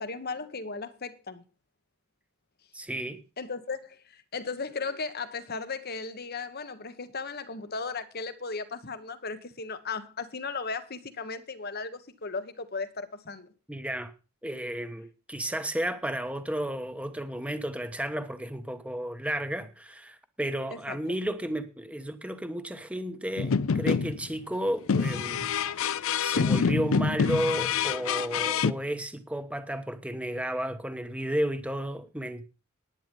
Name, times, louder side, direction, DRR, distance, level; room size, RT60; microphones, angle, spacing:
voice 1, 0.0-1.4 3.4-13.5 20.7-21.0, left 4 dB, 45° left, 1.2 m, -36 dB
voice 2, 2.7-3.2 13.7-14.1 14.4-25.5 26.2-32.4, right 1 dB, 5° right, 1.2 m, -33 dB
sound 1, 23.4-24.3 24.9-28.7, left 6 dB, 65° left, 0.5 m, -26 dB
11.0 x 9.8 x 5.4 m
head